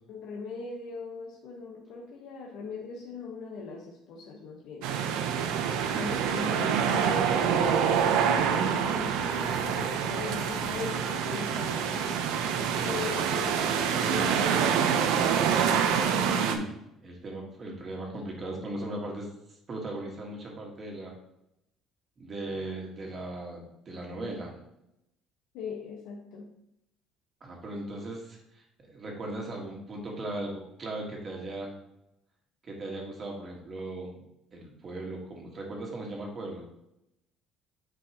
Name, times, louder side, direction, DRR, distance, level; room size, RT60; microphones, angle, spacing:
voice 1, 0.1-4.9 5.9-12.1 12.8-15.2 25.5-26.5, left 4 dB, 70° left, -3 dB, 1.2 m, -40 dB
sound 1, 4.8-16.6, right 7 dB, 85° right, 0.7 m, -26 dB
voice 2, 5.7-6.1 12.7-13.0 16.3-16.7 17.0-19.3 19.7-21.1 22.2-24.6 27.4-31.7 32.6-34.2 34.5-36.6, right 2 dB, 25° right, 0 dB, 1.6 m, -38 dB
9.1 x 4.9 x 3.0 m, 0.83 s
cardioid pair, 165°, 0 cm